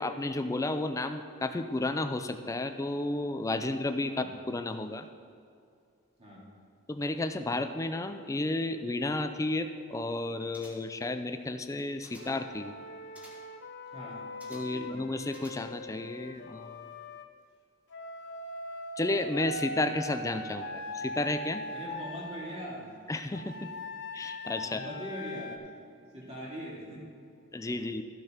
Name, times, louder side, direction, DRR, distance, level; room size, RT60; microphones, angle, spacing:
voice 1, 0.0-5.1 6.9-12.7 14.5-16.8 19.0-21.6 23.1-23.7 24.1-24.8 27.5-28.0, left 2 dB, 15° left, 9 dB, 0.4 m, -32 dB
sound 1, 10.5-11.1 11.7-12.5 13.2-13.6 14.4-14.9 15.3-15.9 16.3-16.4, equal, 5° right, 1.4 m, -54 dB
Wind instrument woodwind instrument, 12.2-17.3 17.9-22.6 23.3-25.6, left 1 dB, 55° left, 0.6 m, -41 dB
voice 2, 13.9-14.3 14.7-15.0 21.7-22.9 24.6-25.6 26.1-27.1, equal, 30° right, -5 dB, 2.5 m, -41 dB
13.5 x 6.4 x 4.5 m, 2.4 s
head